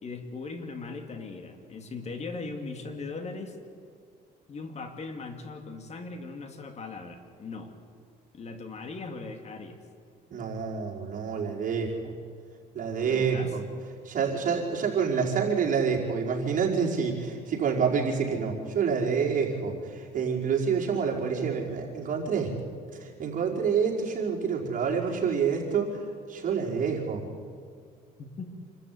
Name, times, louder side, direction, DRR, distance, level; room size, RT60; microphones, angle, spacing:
voice 1, 0.0-3.6 4.5-7.7 8.3-9.8 13.0-13.6 28.2-28.5, left 3 dB, 40° left, 6 dB, 2.5 m, -39 dB
voice 2, 10.3-11.9 12.7-13.6 14.0-22.5 23.0-26.0 26.3-27.3, right 6 dB, 50° right, -2 dB, 5.0 m, -27 dB
27.0 x 13.5 x 9.6 m, 2.2 s
cardioid pair, 110°, 17 cm